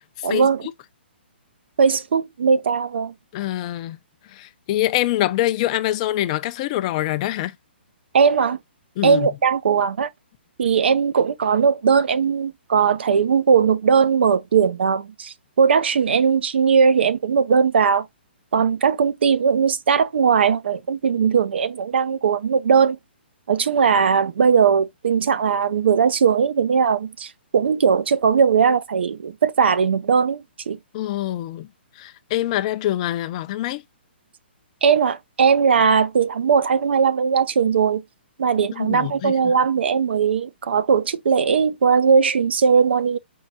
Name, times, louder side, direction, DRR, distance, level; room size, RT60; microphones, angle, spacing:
voice 1, 0.2-0.6 1.8-3.1 8.1-8.6 9.0-10.1 10.6-18.1 18.5-23.0 23.5-30.8 34.8-38.0 38.4-43.2, right 6 dB, 70° right, 0.6 m, -19 dB
voice 2, 3.3-4.0 4.3-7.5 9.0-9.3 30.9-31.7 32.0-33.8 38.7-39.5, left 14 dB, 35° left, 0.5 m, -25 dB
4.6 x 2.4 x 4.1 m
hypercardioid pair, 145°, 6 cm